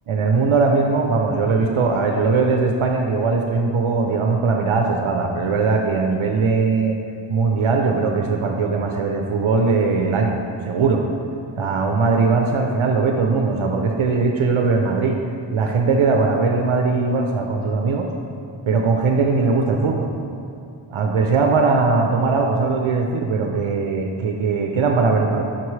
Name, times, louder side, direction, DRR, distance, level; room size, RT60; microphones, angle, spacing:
voice 1, 0.1-7.0 7.3-11.0 11.6-15.2 15.5-18.1 18.7-20.1 20.9-25.4, right 4 dB, 80° right, 2 dB, 0.6 m, -20 dB
5.9 x 5.9 x 3.1 m, 2.5 s
wide cardioid pair, 65°, 48 cm